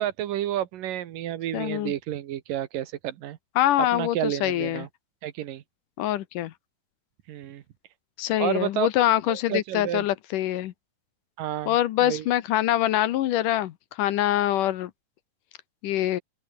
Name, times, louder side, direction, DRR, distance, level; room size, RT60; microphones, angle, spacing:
voice 1, 0.0-3.4 3.9-4.9 5.2-5.6 7.3-7.6 8.4-8.9 9.3-10.1 11.4-12.3, right 12 dB, 75° right, 2.9 m, -30 dB
voice 2, 1.5-1.9 3.6-4.9 6.0-6.5 8.2-10.7 11.7-14.9 15.8-16.2, left 13 dB, 70° left, 2.4 m, -24 dB
omnidirectional pair, 4.1 m